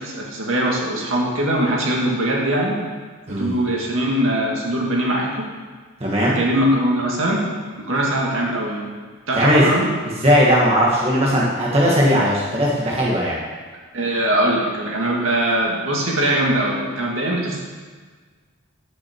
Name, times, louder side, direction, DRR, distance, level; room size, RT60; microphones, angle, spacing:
voice 1, 0.0-2.8 3.3-5.5 6.2-7.5 7.8-8.9 9.3-9.9 13.9-17.6, right 1 dB, 65° right, -2 dB, 2.2 m, -21 dB
voice 2, 6.0-6.4 9.3-9.7 10.2-13.4, equal, 30° right, -5 dB, 1.6 m, -18 dB
15.0 x 6.2 x 4.6 m, 1.5 s
head